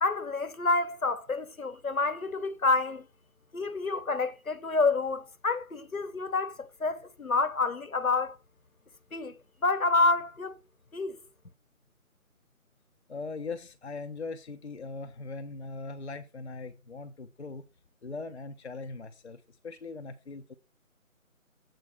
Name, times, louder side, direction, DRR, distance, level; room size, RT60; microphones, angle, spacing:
voice 1, 0.0-3.1 3.5-8.4 9.1-9.4 9.6-10.6 10.9-11.2, left 3 dB, 75° left, 1.2 m, -28 dB
voice 2, 13.1-17.6 18.0-20.5, left 3 dB, 50° left, 0.7 m, -40 dB
7.7 x 4.8 x 5.7 m
figure-of-eight pair, 155°, 43 cm